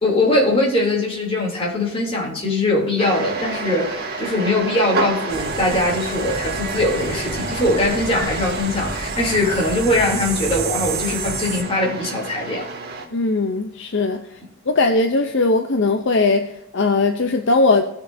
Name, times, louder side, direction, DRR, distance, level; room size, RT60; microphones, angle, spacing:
voice 1, 0.0-12.6, left 2 dB, 25° left, -2 dB, 3.0 m, -21 dB
sound 1, 3.0-13.1, right 3 dB, 45° right, 2.1 m, -29 dB
sound 2, 5.3-11.6, right 4 dB, 65° right, 2.3 m, -30 dB
voice 2, 13.1-14.4 14.7-17.8, left 3 dB, 55° left, 6 dB, 0.6 m, -19 dB
17.5 x 6.7 x 2.7 m, 0.84 s
head